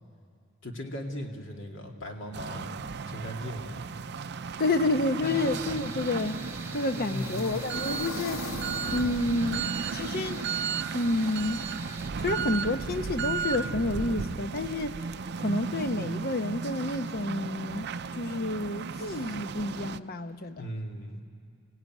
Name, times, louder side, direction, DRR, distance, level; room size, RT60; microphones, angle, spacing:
voice 1, 0.6-3.8 5.2-5.5 6.9-7.5 20.6-21.2, left 1 dB, 65° left, 2 dB, 2.6 m, -38 dB
sound 1, 2.3-20.0, right 5 dB, 55° right, 0.5 m, -35 dB
voice 2, 4.6-6.5 6.7-8.5 8.9-10.4 10.9-11.7 12.2-15.0 15.4-17.9 18.1-20.7, left 2 dB, 50° left, 9 dB, 1.0 m, -29 dB
sound 2, 5.2-12.1, right 3 dB, 15° right, 1.3 m, -43 dB
sound 3, 5.8-10.8, left 3 dB, 80° left, 1.6 m, -43 dB
29.5 x 17.5 x 9.2 m, 2.2 s
head